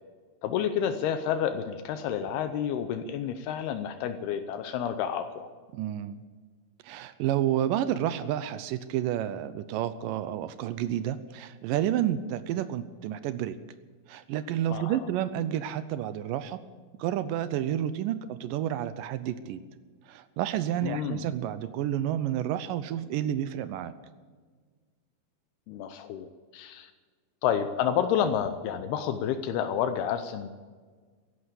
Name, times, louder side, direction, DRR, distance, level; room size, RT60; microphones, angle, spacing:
voice 1, 0.4-5.5 14.7-15.0 20.8-21.2 25.7-26.9 27.4-30.5, left 9 dB, 80° left, 8 dB, 2.7 m, -30 dB
voice 2, 5.7-6.2 6.8-13.6 14.1-16.6 17.0-19.6 20.1-23.9, right 11 dB, 80° right, 12 dB, 2.0 m, -30 dB
15.0 x 11.5 x 8.3 m, 1.5 s
omnidirectional pair, 4.6 m